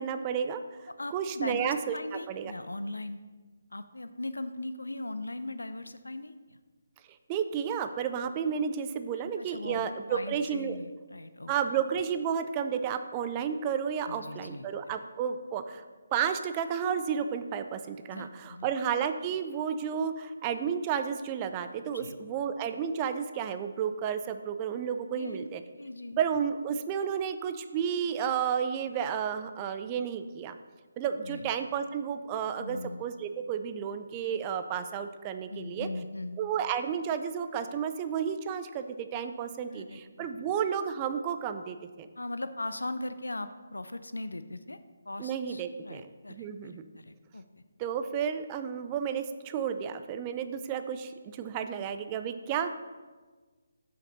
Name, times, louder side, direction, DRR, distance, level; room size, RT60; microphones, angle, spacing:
voice 1, 0.0-2.5 7.3-10.8 11.5-15.8 16.1-25.6 26.2-30.6 31.0-35.9 36.4-42.1 45.2-46.8 47.8-52.7, right 7 dB, 20° right, 9 dB, 0.4 m, -32 dB
voice 2, 0.9-3.2 3.7-6.6 9.4-11.5 14.1-14.7 18.1-18.7 21.8-22.2 25.1-26.2 31.2-31.5 32.6-33.0 35.5-36.4 39.6-40.4 42.2-44.8 45.1-47.6, left 2 dB, 70° left, 12 dB, 0.5 m, -39 dB
7.6 x 5.9 x 5.4 m, 1.4 s
figure-of-eight pair, 145°, 0 cm